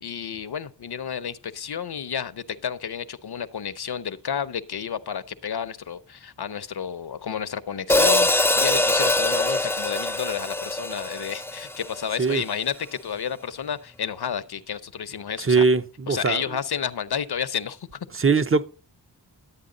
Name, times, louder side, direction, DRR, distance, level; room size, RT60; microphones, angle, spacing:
voice 1, 0.0-15.6 16.1-18.1, left 7 dB, 60° left, 0.8 m, -31 dB
Hi-hat, 7.9-12.2, left 2 dB, 5° left, 0.4 m, -23 dB
voice 2, 15.4-16.4 18.1-18.6, right 4 dB, 30° right, 0.7 m, -21 dB
11.5 x 8.3 x 3.9 m
cardioid pair, 45°, 44 cm